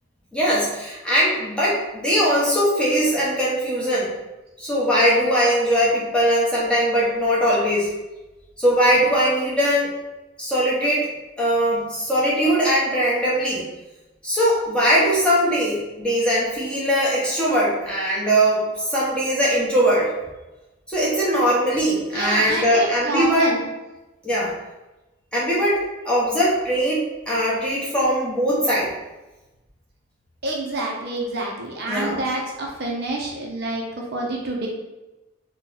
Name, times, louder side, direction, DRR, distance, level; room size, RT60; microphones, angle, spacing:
voice 1, 0.3-4.1 4.6-7.9 8.6-9.9 10.4-11.1 11.4-13.6 14.2-20.1 20.9-23.5 24.2-24.5 25.3-28.9 31.9-32.2, equal, 5° left, -7 dB, 0.7 m, -20 dB
voice 2, 22.1-23.6 30.4-33.8 34.1-34.7, right 2 dB, 50° right, -2 dB, 0.5 m, -27 dB
2.9 x 2.2 x 3.7 m, 1.1 s
head